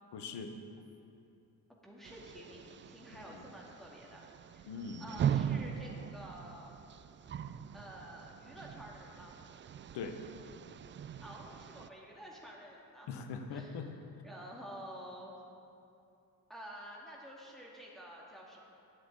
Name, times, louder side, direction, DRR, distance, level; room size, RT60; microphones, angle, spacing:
voice 1, 0.1-0.5 3.1-3.5 4.7-5.1 9.9-10.2 13.1-13.9, left 5 dB, 60° left, 7 dB, 1.2 m, -42 dB
voice 2, 1.8-4.3 4.5-4.7 5.0-6.7 7.7-9.4 11.2-13.1 13.5-13.9 14.2-15.3 16.5-18.6, equal, ahead, -4 dB, 2.2 m, -50 dB
Tapping the door on the wind, 2.0-11.9, right 9 dB, 25° right, 0.4 m, -40 dB
12.5 x 10.5 x 4.0 m, 2.8 s
hypercardioid pair, 50°, 46 cm